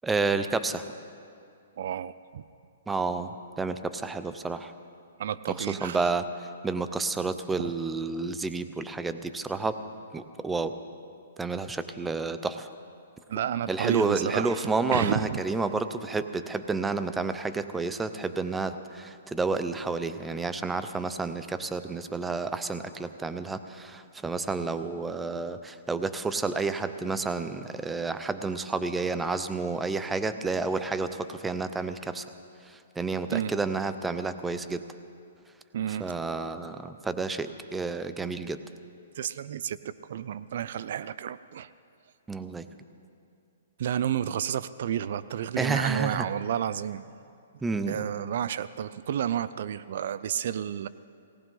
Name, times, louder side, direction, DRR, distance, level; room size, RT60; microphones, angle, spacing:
voice 1, 0.0-0.8 2.9-3.3 3.6-4.7 5.6-6.3 6.6-9.8 10.1-10.7 11.4-12.7 13.7-32.3 33.0-34.8 36.0-38.6 42.3-42.7 45.6-46.3 47.6-48.0, right 4 dB, 10° right, 11 dB, 0.6 m, -30 dB
voice 2, 1.8-2.4 5.2-6.1 13.3-15.4 33.3-33.5 35.7-36.2 39.2-41.7 43.8-47.1 47.9-50.9, right 9 dB, 60° right, 16 dB, 0.4 m, -31 dB
18.5 x 18.5 x 3.8 m, 2.4 s
hypercardioid pair, 145°, 0 cm